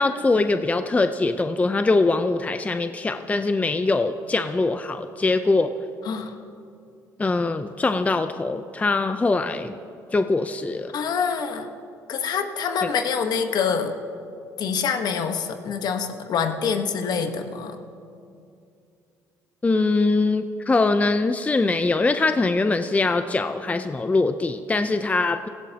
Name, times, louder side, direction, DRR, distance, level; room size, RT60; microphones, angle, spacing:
voice 1, 0.0-5.7 7.2-9.7 10.1-11.0 12.8-12.9 19.6-25.5, left 3 dB, 20° left, 9 dB, 0.5 m, -22 dB
voice 2, 6.1-6.4 10.9-11.7 12.1-13.9 14.6-17.7, left 6 dB, 60° left, 6 dB, 1.2 m, -26 dB
17.0 x 15.5 x 2.9 m, 2.5 s
supercardioid pair, 80°, 8 cm